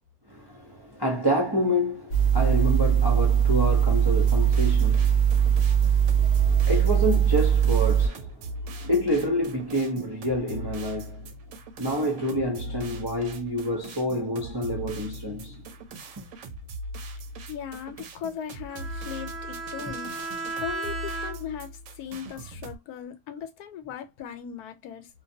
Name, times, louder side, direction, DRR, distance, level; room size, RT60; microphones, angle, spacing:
voice 1, 0.3-11.3 11.8-15.6, equal, 35° right, 0.4 m, -28 dB
sound 1, 2.1-8.1, right 8 dB, 55° left, 0.8 m, -21 dB
sound 2, 4.1-22.8, right 1 dB, 70° right, 0.9 m, -40 dB
voice 2, 17.5-20.1 20.6-25.1, left 8 dB, 85° left, 1.1 m, -38 dB
Bowed string instrument, 18.7-21.7, right 3 dB, ahead, 0.7 m, -35 dB
2.5 x 2.3 x 2.6 m
omnidirectional pair, 1.6 m